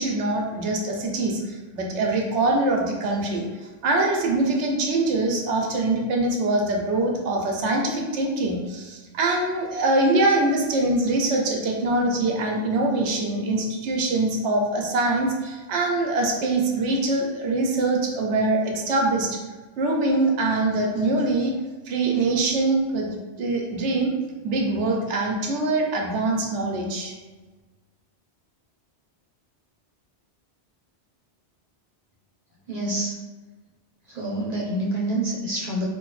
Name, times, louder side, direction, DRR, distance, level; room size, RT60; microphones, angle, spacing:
voice 1, 0.0-19.4 19.8-21.5 21.9-23.1 23.4-24.1 24.4-27.1, right 2 dB, 90° right, 0 dB, 0.9 m, -23 dB
voice 2, 32.7-33.2 34.1-35.8, right 1 dB, 40° right, -6 dB, 0.9 m, -27 dB
2.8 x 2.5 x 3.1 m, 1.3 s
omnidirectional pair, 1.1 m